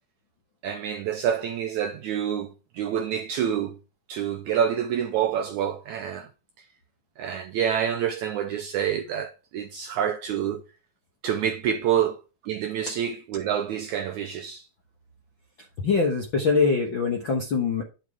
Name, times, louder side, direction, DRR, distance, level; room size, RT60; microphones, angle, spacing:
voice 1, 0.6-3.8 4.1-6.3 7.2-10.6 11.2-12.2 12.4-14.7, right 9 dB, 90° right, 1.7 m, -27 dB
voice 2, 15.8-17.8, left 4 dB, 65° left, 1.2 m, -23 dB
9.9 x 7.7 x 3.6 m
omnidirectional pair, 4.2 m